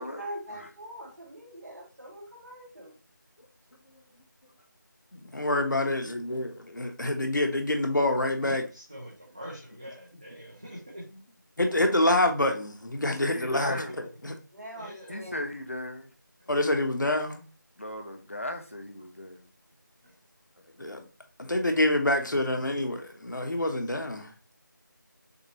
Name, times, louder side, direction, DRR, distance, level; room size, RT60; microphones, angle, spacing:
voice 1, 0.0-2.9 14.5-15.4, right 1 dB, 60° right, 2.3 m, -42 dB
voice 2, 5.1-8.6 11.6-13.8 14.2-14.3 16.5-17.4 20.8-21.0 21.4-24.3, left 1 dB, 65° left, 1.0 m, -26 dB
voice 3, 8.4-11.0 13.7-13.9 14.7-15.3 16.4-16.5 20.0-20.2, equal, 20° right, 0.6 m, -44 dB
voice 4, 13.0-13.9 15.1-16.1 17.8-19.5, left 1 dB, 40° left, 0.5 m, -37 dB
6.5 x 2.2 x 2.8 m
figure-of-eight pair, 170°, 11 cm